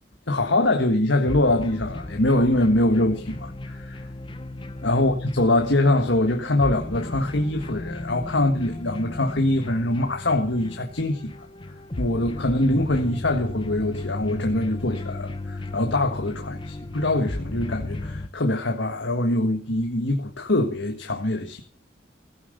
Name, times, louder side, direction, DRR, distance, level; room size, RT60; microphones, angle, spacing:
voice 1, 0.3-4.0 4.8-11.3 12.0-21.6, left 1 dB, 70° left, 1.6 m, -23 dB
sound 1, 1.2-18.3, left 2 dB, 25° left, 0.9 m, -35 dB
16.0 x 9.3 x 6.6 m
head